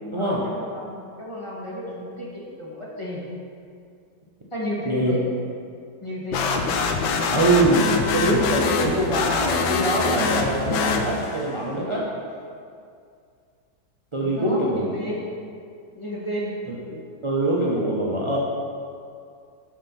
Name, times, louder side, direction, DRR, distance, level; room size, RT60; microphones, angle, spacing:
voice 1, 0.0-3.2 4.5-5.2 6.0-6.6 14.2-15.2 15.9-16.6, equal, 15° left, -6 dB, 1.5 m, -32 dB
sound 1, 6.3-11.5, left 5 dB, 85° left, 1.5 m, -24 dB
voice 2, 7.3-7.9 8.1-12.0 14.1-15.0 17.2-18.4, right 2 dB, 40° right, -5 dB, 0.4 m, -23 dB
7.4 x 6.5 x 5.3 m, 2.3 s
omnidirectional pair, 2.1 m